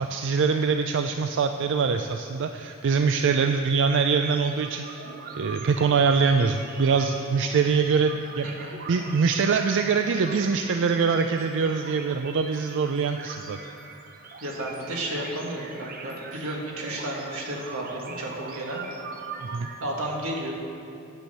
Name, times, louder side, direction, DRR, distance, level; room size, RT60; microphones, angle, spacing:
voice 1, 0.0-5.0 5.3-13.6 19.4-19.7, right 5 dB, 60° right, 6 dB, 0.4 m, -24 dB
sound 1, 3.8-19.7, right 4 dB, 45° right, 0.8 m, -42 dB
voice 2, 8.4-8.7 14.4-18.8 19.8-20.5, right 1 dB, 85° right, -1 dB, 1.8 m, -32 dB
9.0 x 7.6 x 6.8 m, 2.6 s
head